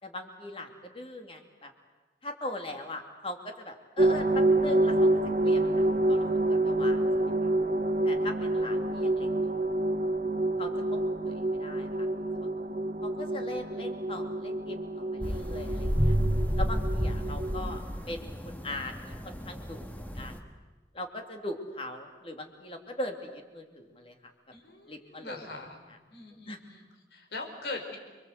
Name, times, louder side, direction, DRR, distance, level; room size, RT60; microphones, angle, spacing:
voice 1, 0.0-1.7 2.2-5.1 5.4-7.0 7.4-7.5 8.0-9.6 10.6-12.5 13.0-16.2 16.6-20.5 20.9-24.2 24.9-25.6 26.4-26.6, left 1 dB, 30° left, 4 dB, 2.7 m, -40 dB
sound 1, 4.0-17.8, right 1 dB, 45° right, 0.9 m, -28 dB
sound 2, 15.2-20.4, equal, 10° left, 1.5 m, -35 dB
sound 3, 15.9-18.1, equal, 15° right, 3.9 m, -29 dB
voice 2, 24.5-25.8 26.1-28.0, left 3 dB, 75° left, 2 dB, 5.3 m, -41 dB
29.5 x 23.0 x 8.2 m, 1.3 s
head